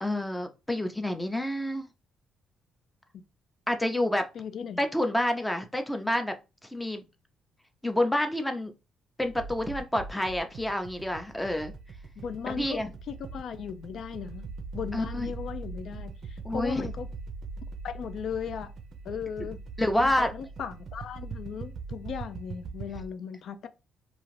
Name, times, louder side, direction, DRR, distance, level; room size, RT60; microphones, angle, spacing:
voice 1, 0.0-1.9 3.7-4.3 4.8-6.3 6.7-7.0 7.8-8.7 9.2-11.7 12.6-12.9 14.9-15.3 16.4-16.9 19.8-20.3, left 1 dB, 10° left, 0.5 m, -28 dB
voice 2, 4.3-4.8 12.2-17.1 17.8-18.7 19.0-19.6 20.0-23.7, left 7 dB, 65° left, 0.3 m, -37 dB
sound 1, 9.2-23.1, right 4 dB, 60° right, 0.4 m, -41 dB
2.4 x 2.4 x 3.1 m
cardioid pair, 90°, 0 cm